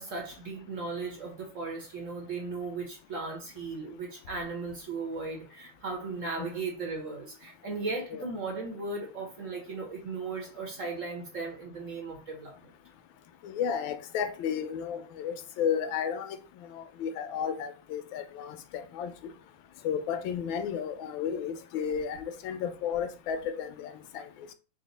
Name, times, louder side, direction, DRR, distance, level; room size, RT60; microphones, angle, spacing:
voice 1, 0.0-12.7, right 3 dB, 50° right, 1.1 m, -37 dB
voice 2, 13.4-16.4 16.7-19.1 19.8-24.2, left 7 dB, 85° left, 1.4 m, -33 dB
4.0 x 2.1 x 4.0 m
omnidirectional pair, 2.1 m